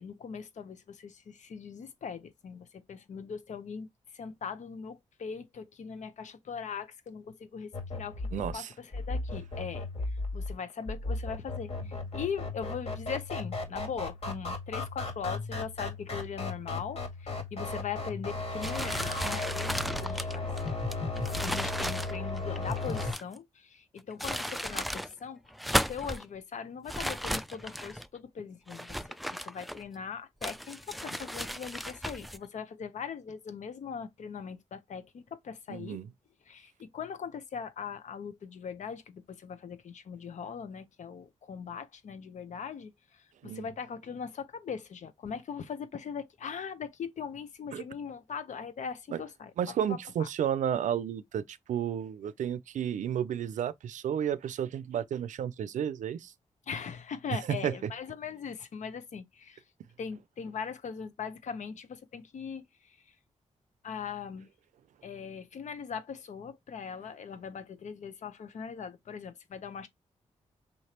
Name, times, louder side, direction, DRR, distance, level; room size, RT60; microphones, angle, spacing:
voice 1, 0.0-9.9 10.3-20.5 21.4-29.0 29.3-36.0 36.5-49.5 49.9-50.3 56.7-59.6 60.0-63.0 63.8-64.5 65.0-69.9, left 6 dB, 75° left, 0.9 m, -40 dB
sound 1, 7.7-23.1, left 3 dB, 55° left, 1.9 m, -35 dB
voice 2, 8.3-8.7 21.1-21.3 35.7-36.1 43.4-43.7 47.7-47.8 49.1-49.2 49.6-56.3 57.5-57.7, right 9 dB, 90° right, 0.5 m, -32 dB
sound 2, 18.6-23.4 24.0-25.1 25.5-26.2 26.9-28.1 28.7-30.0 30.4-32.4, equal, ahead, 0.4 m, -35 dB
5.4 x 3.3 x 2.9 m
cardioid pair, 85°, 12 cm